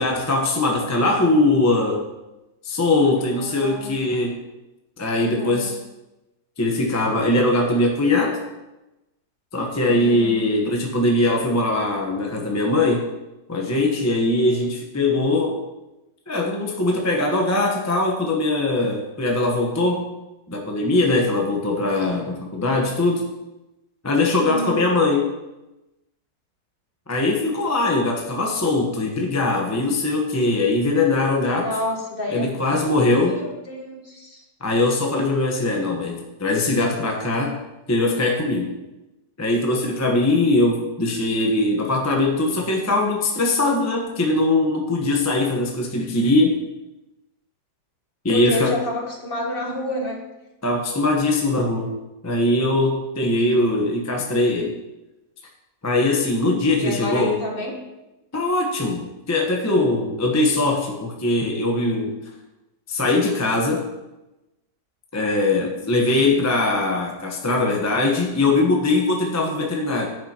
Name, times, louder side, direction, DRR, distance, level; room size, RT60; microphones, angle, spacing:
voice 1, 0.0-2.1 2.6-4.4 5.0-5.7 6.6-8.4 9.5-13.1 13.5-15.6 16.3-20.1 20.5-23.3 24.0-25.3 27.1-31.7 32.3-33.4 34.6-37.6 37.9-38.7 39.4-46.6 48.2-48.7 50.6-51.9 52.2-54.7 55.8-57.4 58.3-62.2 62.9-63.9 65.1-70.1, left 2 dB, 15° left, 0 dB, 0.7 m, -21 dB
voice 2, 3.2-3.9 5.2-5.7 9.8-10.5 24.4-24.9 31.5-32.5 33.0-34.4 48.3-50.2 56.8-57.8, left 1 dB, 35° left, -1 dB, 1.2 m, -29 dB
10.5 x 8.4 x 2.9 m, 1.0 s
omnidirectional pair, 1.8 m